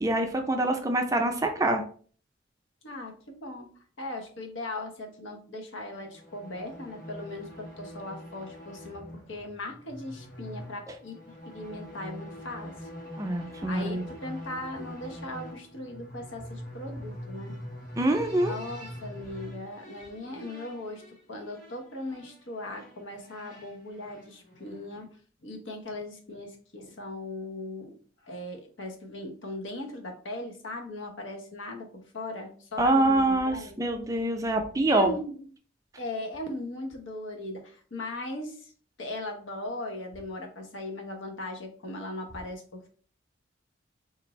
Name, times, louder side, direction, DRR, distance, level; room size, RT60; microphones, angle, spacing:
voice 1, 0.0-1.8 13.2-14.0 18.0-18.5 32.8-35.1, right 2 dB, 15° right, 4 dB, 0.4 m, -25 dB
voice 2, 2.8-3.7 4.0-12.7 13.7-17.5 18.4-21.0 21.3-25.1 25.4-28.0 28.2-33.7 34.9-35.3 36.0-38.7 39.0-42.9, left 1 dB, 90° left, 3 dB, 0.9 m, -38 dB
sound 1, 5.9-25.0, equal, 50° left, 1.2 m, -44 dB
4.0 x 2.5 x 3.0 m, 0.43 s
head